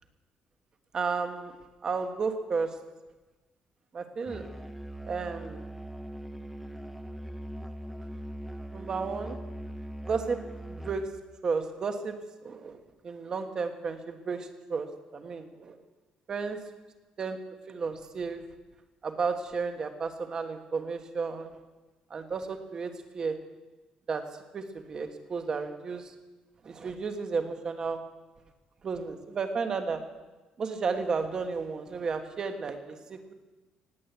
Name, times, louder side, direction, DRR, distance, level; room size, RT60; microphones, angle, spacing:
voice 1, 0.9-1.5 1.8-2.7 3.9-4.4 5.0-5.6 8.7-9.4 10.1-10.4 10.7-11.0 11.4-12.1 12.4-12.8 13.0-14.9 15.1-15.8 16.3-16.6 17.2-17.4 17.7-18.4 19.0-21.6 22.1-23.4 24.1-24.2 24.5-26.1 26.6-28.0 28.8-30.0 30.6-33.3, right 5 dB, 30° right, 7 dB, 1.3 m, -32 dB
Musical instrument, 4.3-11.2, right 1 dB, 5° right, 0.8 m, -41 dB
18.5 x 8.5 x 8.2 m, 1.2 s
cardioid pair, 175°, 2 cm